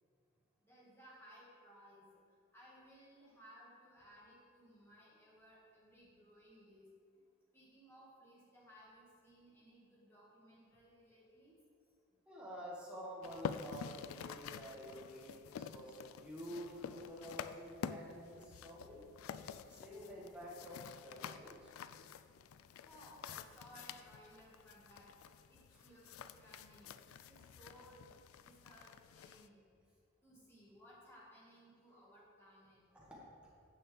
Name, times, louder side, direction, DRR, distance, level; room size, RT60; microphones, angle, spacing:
voice 1, 0.6-2.0 2.5-6.9 7.5-11.6 22.9-29.6 30.2-32.8, equal, 10° left, -7 dB, 1.9 m, -61 dB
voice 2, 12.3-19.0 19.7-21.7 25.7-25.8 32.9-33.5, equal, 5° right, -7 dB, 1.8 m, -50 dB
sound 1, 13.2-29.5, left 7 dB, 90° left, 0.3 m, -49 dB
10.5 x 6.0 x 3.4 m, 2.2 s
head